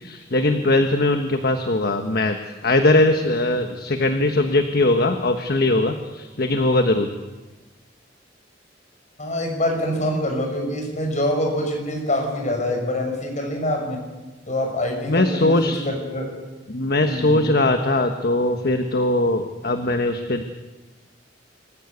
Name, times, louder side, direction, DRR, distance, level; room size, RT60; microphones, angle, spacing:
voice 1, 0.0-2.4 2.6-7.1 15.1-15.8 16.7-20.4, left 2 dB, 55° left, 6 dB, 1.3 m, -20 dB
voice 2, 9.2-14.0 14.5-16.3 17.0-17.5, left 1 dB, 40° left, 2 dB, 6.2 m, -25 dB
26.5 x 15.0 x 8.2 m, 1.2 s
head